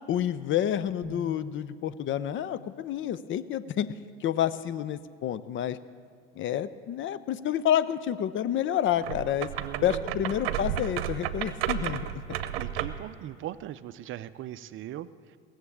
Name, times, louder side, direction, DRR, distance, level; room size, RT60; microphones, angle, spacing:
voice 1, 0.1-3.9 4.2-5.8 6.4-9.5 9.8-12.0, left 10 dB, 40° left, 15 dB, 0.6 m, -29 dB
sound 1, 1.0-4.5, right 1 dB, 25° right, 1.9 m, -49 dB
sound 2, 9.0-13.1, right 11 dB, 75° right, 0.8 m, -32 dB
voice 2, 9.6-10.0 12.5-15.4, right 12 dB, 40° right, 15 dB, 0.5 m, -39 dB
19.0 x 7.4 x 8.5 m, 2.2 s
hypercardioid pair, 80°, 30 cm